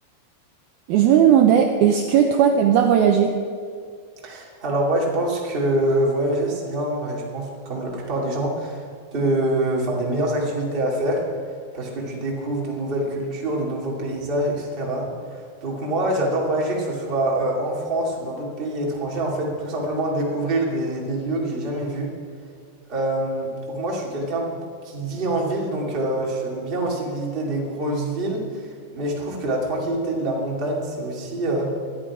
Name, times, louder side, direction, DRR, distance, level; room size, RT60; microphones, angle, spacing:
voice 1, 0.9-3.4, right 8 dB, 85° right, 4 dB, 2.1 m, -16 dB
voice 2, 4.2-8.8 9.1-11.2 11.7-22.1 22.9-31.7, right 1 dB, 20° right, -2 dB, 1.6 m, -25 dB
20.5 x 13.5 x 4.9 m, 2.1 s
omnidirectional pair, 5.4 m